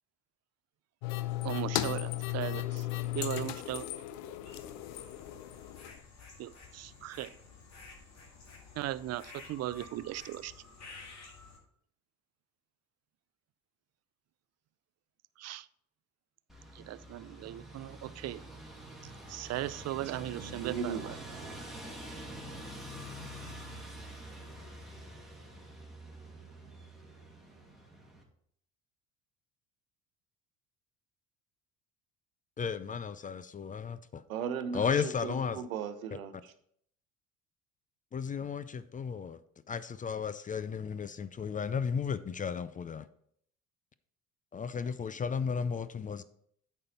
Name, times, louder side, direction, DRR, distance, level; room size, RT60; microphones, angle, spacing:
sound 1, 1.0-6.0, left 15 dB, 75° left, 0.7 m, -36 dB
voice 1, 1.4-2.9 3.1-3.9 6.4-7.3 8.8-10.5 15.4-15.7 16.7-18.4 19.3-21.2, right 14 dB, 40° right, 0.5 m, -38 dB
sound 2, 4.4-11.6, left 4 dB, 40° left, 2.2 m, -52 dB
sound 3, 16.5-28.2, right 1 dB, ahead, 2.3 m, -46 dB
voice 2, 20.0-21.2 21.4-21.6 34.3-36.5, right 7 dB, 90° right, 0.8 m, -38 dB
voice 3, 32.6-34.2 34.7-35.6 38.1-39.4 39.7-43.1 44.5-46.2, left 6 dB, 20° left, 0.4 m, -34 dB
8.6 x 5.6 x 4.2 m
hypercardioid pair, 65°, 40 cm